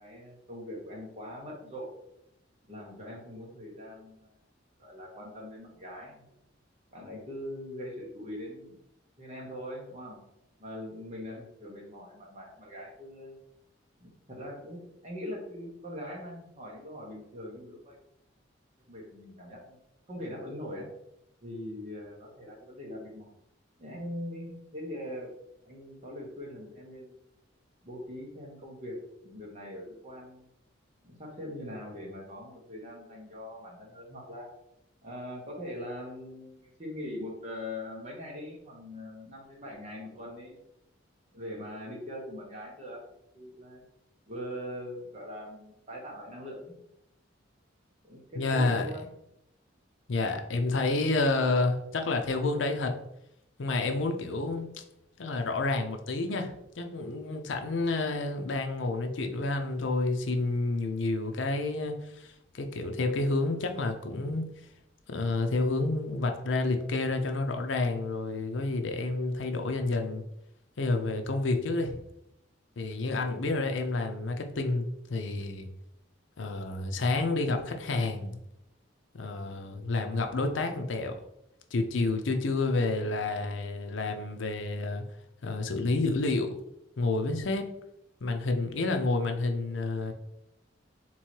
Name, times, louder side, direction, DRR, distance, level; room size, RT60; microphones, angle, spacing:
voice 1, 0.0-1.9 2.7-4.4 4.8-6.3 6.9-8.8 9.2-10.2 10.6-13.4 14.0-18.0 18.9-19.8 20.1-20.9 21.4-23.3 23.8-25.3 25.6-27.2 27.8-29.0 29.2-30.5 31.0-34.5 35.0-40.6 41.3-43.0 43.3-43.8 44.3-46.7 48.0-49.1, left 1 dB, 35° right, -3 dB, 1.4 m, -41 dB
voice 2, 48.3-48.9 50.1-53.0 53.6-54.7 55.2-64.5 65.1-70.2 70.8-72.0 72.8-75.7 76.4-78.4 79.1-81.2 81.7-85.0 85.4-86.6 87.0-87.7 88.2-90.1, left 3 dB, 75° left, 5 dB, 0.6 m, -29 dB
3.7 x 3.1 x 4.4 m, 0.79 s
head